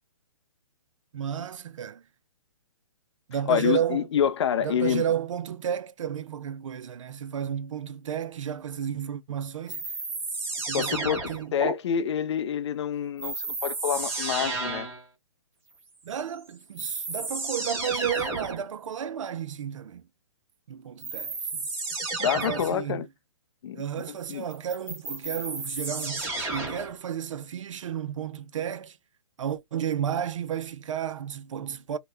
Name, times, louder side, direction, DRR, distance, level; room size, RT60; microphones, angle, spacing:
voice 1, 1.1-2.0 3.3-4.1 4.6-9.8 10.7-11.5 16.0-20.0 20.7-21.6 22.3-23.0 23.7-29.0 29.4-32.0, right 9 dB, 70° right, 0.5 m, -32 dB
voice 2, 3.5-5.0 10.7-11.2 11.5-14.9 22.2-23.1 23.6-23.8 24.3-24.4, left 8 dB, 60° left, 0.5 m, -27 dB
sound 1, 9.7-11.7 13.2-15.0 16.3-16.4 16.8-18.6 21.0-22.8 24.5-26.9, right 3 dB, 15° right, 1.0 m, -32 dB
2.9 x 2.2 x 3.1 m
hypercardioid pair, 140°, 17 cm